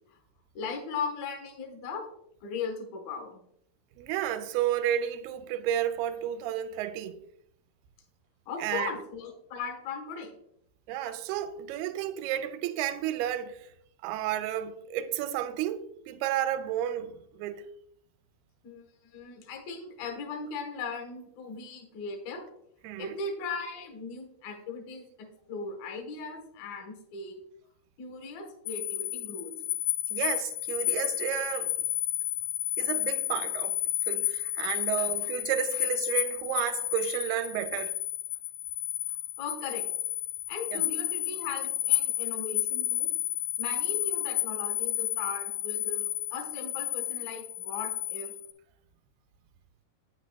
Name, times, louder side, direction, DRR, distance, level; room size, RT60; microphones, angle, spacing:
voice 1, 0.5-2.1 2.4-3.4 8.5-10.4 18.6-22.4 23.0-27.4 28.0-29.5 35.0-35.1 39.4-39.9 40.5-43.1 43.6-48.3, left 4 dB, 70° left, 2.9 m, -38 dB
voice 2, 4.0-7.2 8.6-8.9 10.9-13.7 14.0-17.6 22.8-23.2 30.1-31.7 32.8-33.8 34.1-38.0 40.7-40.8, right 11 dB, 85° right, 2.5 m, -32 dB
sound 1, 28.7-48.5, left 15 dB, 85° left, 1.7 m, -31 dB
9.3 x 8.7 x 2.3 m
omnidirectional pair, 4.5 m